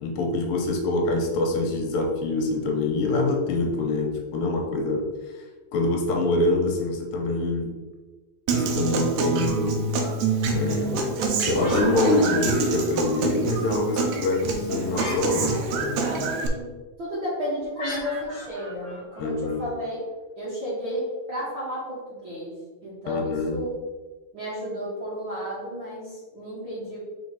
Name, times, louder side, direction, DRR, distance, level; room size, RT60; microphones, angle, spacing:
voice 1, 0.0-5.1 5.3-5.4 5.7-7.7 8.5-9.7 10.5-11.2 11.4-16.3 19.2-19.6 23.1-23.6, left 2 dB, 75° left, 2 dB, 2.6 m, -25 dB
Human voice / Acoustic guitar, 8.5-16.5, right 4 dB, 80° right, 1.7 m, -26 dB
sound 1, 11.5-13.0 14.9-15.9 17.8-19.6, equal, 35° left, 1.7 m, -34 dB
voice 2, 16.4-16.7 17.0-20.0 20.3-22.5 22.8-23.7 24.3-27.0, equal, 50° right, -9 dB, 1.7 m, -32 dB
5.3 x 4.5 x 4.0 m, 1.3 s
omnidirectional pair, 4.2 m